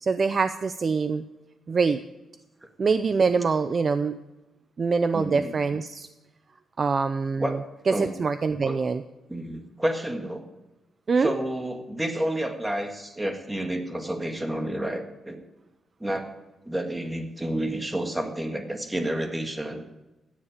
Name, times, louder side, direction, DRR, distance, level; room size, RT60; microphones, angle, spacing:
voice 1, 0.0-1.2 1.7-2.0 2.8-4.2 4.8-6.1 6.8-7.5 7.9-9.0 11.1-11.3, right 4 dB, 35° right, 11 dB, 0.5 m, -24 dB
voice 2, 5.1-5.5 7.4-7.6 7.9-8.2 8.6-8.8 9.3-10.4 11.2-15.4 16.0-16.3 16.6-19.8, right 1 dB, 10° right, 5 dB, 1.8 m, -30 dB
16.5 x 10.5 x 5.0 m, 1.0 s
cardioid pair, 140°, 0 cm